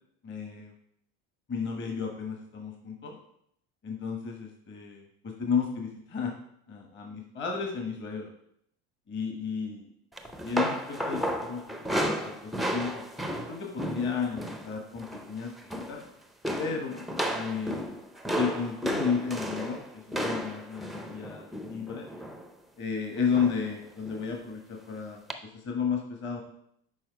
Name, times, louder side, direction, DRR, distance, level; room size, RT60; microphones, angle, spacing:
voice 1, 0.2-0.7 1.5-3.2 3.8-6.3 6.7-8.3 9.1-9.8 10.4-11.7 12.2-13.0 13.5-15.5 15.9-16.0 16.6-17.1 17.3-18.0 18.3-19.8 20.1-22.1 22.8-25.2 25.6-26.4, left 6 dB, 35° left, 2 dB, 1.3 m, -33 dB
sound 1, 10.2-14.7 15.0-15.3 15.6-16.1 16.4-22.5 23.3-23.7 24.0-24.2 25.3-25.4, equal, ahead, 0.5 m, -33 dB
6.3 x 4.4 x 4.6 m, 0.71 s
supercardioid pair, 100°, 33 cm